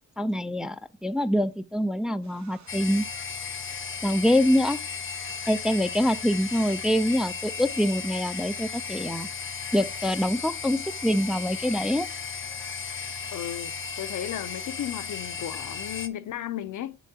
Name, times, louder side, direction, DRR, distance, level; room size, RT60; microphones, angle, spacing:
voice 1, 0.2-3.1 4.0-4.8 5.5-9.3 9.7-12.1, equal, ahead, 0.3 m, -25 dB
sound 1, 2.2-16.1, right 6 dB, 65° right, 0.9 m, -51 dB
sound 2, 2.7-16.1, left 6 dB, 40° left, 0.7 m, -35 dB
voice 2, 13.3-17.0, left 11 dB, 75° left, 0.6 m, -35 dB
7.7 x 6.1 x 2.8 m
cardioid pair, 85°, 30 cm